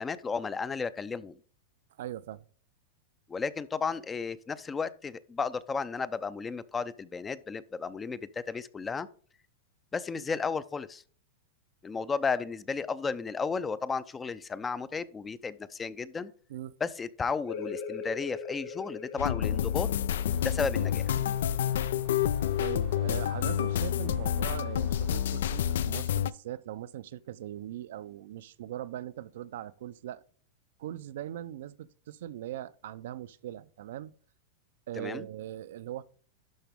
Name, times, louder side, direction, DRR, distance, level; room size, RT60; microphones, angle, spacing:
voice 1, 0.0-1.3 3.3-9.1 9.9-11.0 11.8-16.3 16.8-19.9 20.4-21.1 35.0-35.3, left 5 dB, 15° left, 0.4 m, -33 dB
voice 2, 2.0-2.4 16.5-16.8 22.6-30.2 30.8-34.1 34.9-36.0, right 12 dB, 75° right, 0.5 m, -40 dB
sound 1, 17.4-22.8, left 5 dB, 65° left, 1.2 m, -42 dB
sound 2, 19.2-26.3, left 10 dB, 80° left, 0.3 m, -29 dB
sound 3, 20.2-25.3, right 10 dB, 30° right, 0.6 m, -49 dB
11.5 x 4.0 x 3.5 m
supercardioid pair, 135°, 0 cm